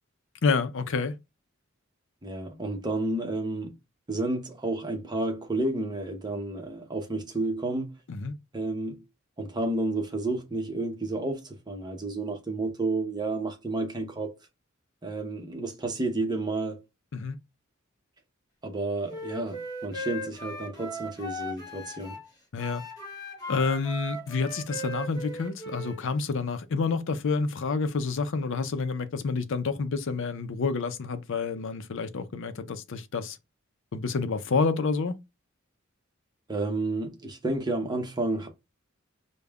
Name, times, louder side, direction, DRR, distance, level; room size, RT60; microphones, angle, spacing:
voice 1, 0.4-1.1 8.1-8.3 17.1-17.4 22.5-22.8 23.5-33.4 33.9-35.2, left 4 dB, 65° left, 0.5 m, -28 dB
voice 2, 2.2-3.7 4.1-8.0 8.5-9.0 9.4-14.3 15.0-16.8 18.6-22.2 36.5-38.5, right 2 dB, 20° right, 0.8 m, -31 dB
Wind instrument woodwind instrument, 19.1-22.3 22.6-26.0, equal, 20° left, 0.9 m, -38 dB
5.2 x 2.2 x 2.3 m
head